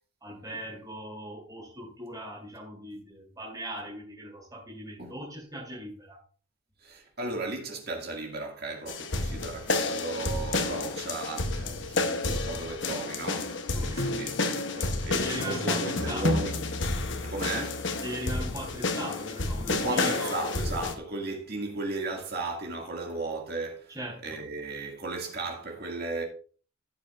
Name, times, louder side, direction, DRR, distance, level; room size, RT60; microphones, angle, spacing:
voice 1, 0.2-6.2 13.7-14.2 14.5-16.8 18.0-20.5 23.9-24.4, right 1 dB, 15° right, 3.4 m, -39 dB
voice 2, 6.8-16.5 17.2-17.8 19.7-24.0 24.2-26.2, right 2 dB, 45° right, 2.0 m, -35 dB
sound 1, 8.9-20.9, left 3 dB, 55° left, 0.9 m, -30 dB
15.5 x 6.7 x 2.4 m
head